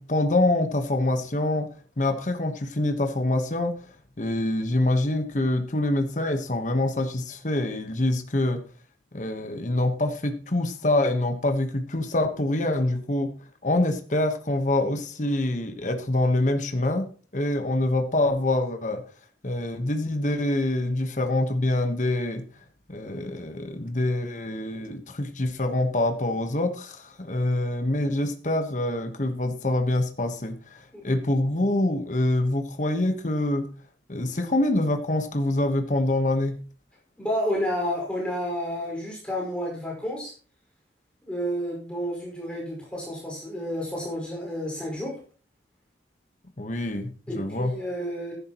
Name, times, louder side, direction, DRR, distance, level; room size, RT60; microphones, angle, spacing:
voice 1, 0.0-1.7 2.0-3.9 4.2-8.6 9.1-13.3 13.6-17.1 17.3-19.0 19.4-22.4 22.9-33.6 34.1-36.5 46.6-47.7, left 1 dB, 40° left, 6 dB, 1.2 m, -25 dB
voice 2, 37.2-40.3 41.2-45.2 47.3-48.3, equal, 5° left, -3 dB, 5.0 m, -30 dB
12.5 x 11.0 x 3.0 m, 0.40 s
head